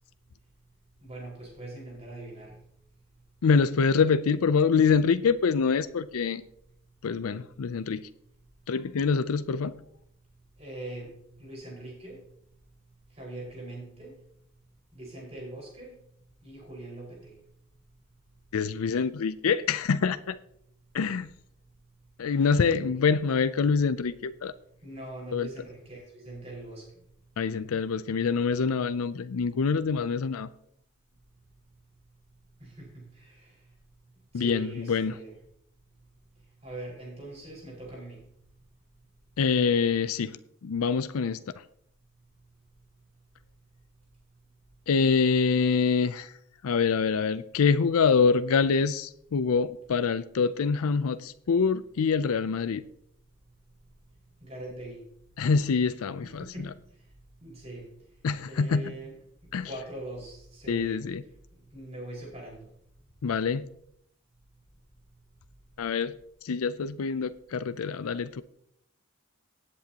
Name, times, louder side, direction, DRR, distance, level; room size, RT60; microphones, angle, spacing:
voice 1, 1.0-2.6 10.6-11.1 11.4-12.2 13.1-14.1 14.9-16.0 16.4-17.4 22.6-22.9 24.8-26.9 32.6-33.6 34.3-35.4 36.6-38.2 54.4-55.0 56.2-56.7 57.4-57.9 58.4-59.1 59.6-61.1 61.7-62.7, right 1 dB, 30° right, -4 dB, 5.0 m, -42 dB
voice 2, 3.4-6.4 7.0-8.0 8.7-9.7 18.5-20.4 20.9-21.3 22.2-24.5 25.3-25.5 27.4-30.5 34.3-35.2 39.4-40.4 40.6-41.4 44.9-46.3 46.6-52.8 55.4-56.4 58.2-58.8 59.5-59.7 60.7-61.2 63.2-63.7 65.8-66.1 66.4-68.4, left 5 dB, 90° left, 13 dB, 0.5 m, -25 dB
18.0 x 8.4 x 2.9 m, 0.73 s
head